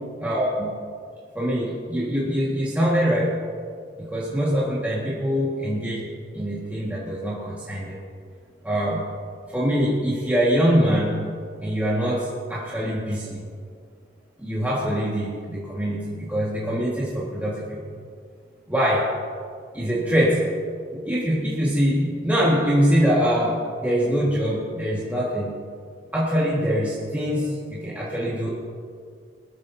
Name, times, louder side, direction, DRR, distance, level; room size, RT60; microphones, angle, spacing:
voice 1, 0.2-0.7 1.4-3.4 4.0-6.1 6.3-8.0 8.6-9.0 9.5-11.2 11.6-13.5 14.4-18.0 18.7-19.1 19.7-20.4 20.9-25.5 26.1-28.5, equal, 10° right, -7 dB, 1.8 m, -23 dB
20.5 x 13.5 x 2.8 m, 2.1 s
head